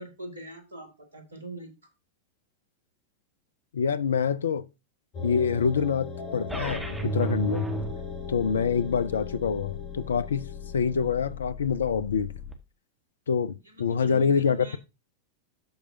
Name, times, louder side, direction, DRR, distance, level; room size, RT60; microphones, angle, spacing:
voice 1, 0.0-1.7 13.7-14.8, right 1 dB, 75° right, 2.0 m, -41 dB
voice 2, 3.7-4.7 5.2-7.7 8.3-10.5 10.7-12.3 13.3-14.8, left 6 dB, 70° left, 0.5 m, -26 dB
sound 1, 5.1-11.3, left 3 dB, 40° left, 2.7 m, -39 dB
sound 2, 6.5-12.5, equal, 5° right, 1.5 m, -36 dB
13.5 x 4.8 x 2.7 m
figure-of-eight pair, 90°, 0 cm